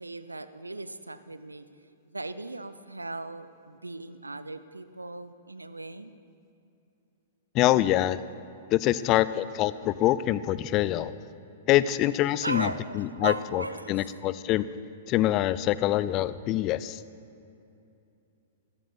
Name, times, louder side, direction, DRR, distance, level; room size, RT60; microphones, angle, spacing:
voice 1, 0.0-1.7 2.0-6.1 8.9-9.3 12.4-14.1, right 2 dB, 90° right, 13 dB, 0.6 m, -37 dB
voice 2, 7.5-8.2 8.7-11.1 11.7-12.7 12.9-13.6 13.9-14.7 15.1-17.0, left 14 dB, 35° left, 16 dB, 0.4 m, -25 dB
12.5 x 12.5 x 6.0 m, 2.7 s
figure-of-eight pair, 110°, 0 cm